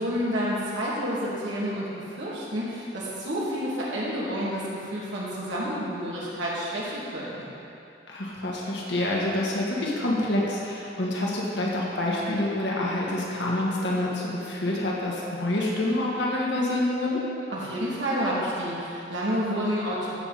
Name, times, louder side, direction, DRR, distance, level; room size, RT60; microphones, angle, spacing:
voice 1, 0.0-7.5 17.5-20.1, equal, 75° right, -7 dB, 2.7 m, -29 dB
voice 2, 8.1-17.2, left 1 dB, 65° left, -4 dB, 2.0 m, -27 dB
15.0 x 7.2 x 4.4 m, 2.7 s
head